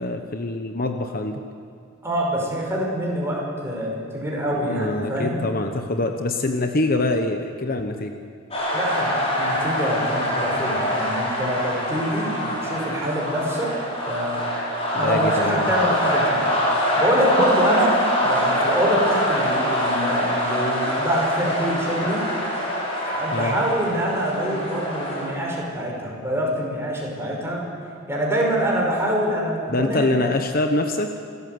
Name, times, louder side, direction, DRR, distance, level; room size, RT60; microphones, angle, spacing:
voice 1, 0.0-1.4 4.5-8.1 14.9-15.7 23.3-23.5 29.7-31.1, left 2 dB, 45° left, 5 dB, 1.1 m, -24 dB
voice 2, 2.0-5.4 8.7-9.1 9.4-13.8 14.1-14.5 15.0-16.4 17.0-22.2 23.0-27.6 28.1-30.3, equal, 15° right, -2 dB, 5.5 m, -25 dB
sound 1, 8.5-25.3, equal, 30° left, 5.9 m, -24 dB
27.0 x 14.0 x 8.0 m, 2.2 s
head